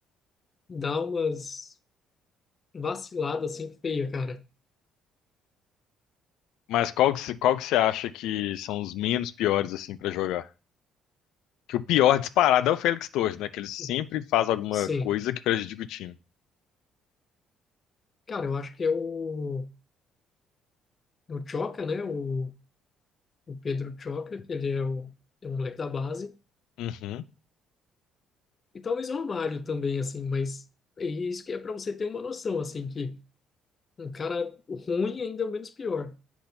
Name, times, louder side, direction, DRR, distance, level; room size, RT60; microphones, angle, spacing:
voice 1, 0.7-1.7 2.7-4.4 13.8-13.9 14.7-15.1 18.3-19.7 21.3-22.5 23.5-25.1 25.4-26.3 28.7-30.6 31.0-33.2 34.0-36.1, left 4 dB, 25° left, 0.5 m, -31 dB
voice 2, 6.7-10.5 11.7-16.1 26.8-27.2, left 12 dB, 80° left, 0.4 m, -26 dB
8.5 x 5.9 x 2.7 m
cardioid pair, 175°, 0 cm